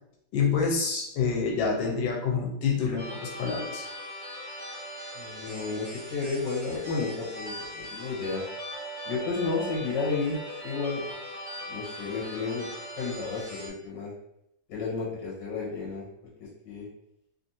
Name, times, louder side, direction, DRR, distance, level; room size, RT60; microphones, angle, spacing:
voice 1, 0.3-3.9, left 5 dB, 90° left, -1 dB, 1.4 m, -27 dB
sound 1, 3.0-13.7, equal, 45° right, 1.2 m, -40 dB
voice 2, 5.1-8.4 9.0-10.4 10.6-11.2 11.6-12.7 13.0-14.1 14.7-16.0 16.4-16.9, left 4 dB, 70° left, -6 dB, 1.5 m, -32 dB
3.4 x 2.5 x 2.7 m, 0.78 s
omnidirectional pair, 2.1 m